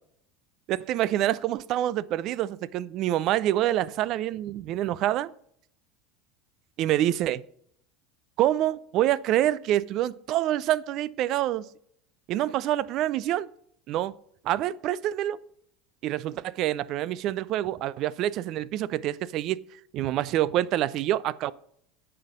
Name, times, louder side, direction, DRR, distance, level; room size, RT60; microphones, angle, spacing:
voice 1, 0.7-5.3 6.8-7.4 8.4-11.7 12.3-13.5 13.9-14.1 14.4-15.4 16.0-19.6 19.9-21.5, right 13 dB, 55° right, 0.4 m, -26 dB
9.6 x 5.7 x 5.2 m
hypercardioid pair, 90°, 0 cm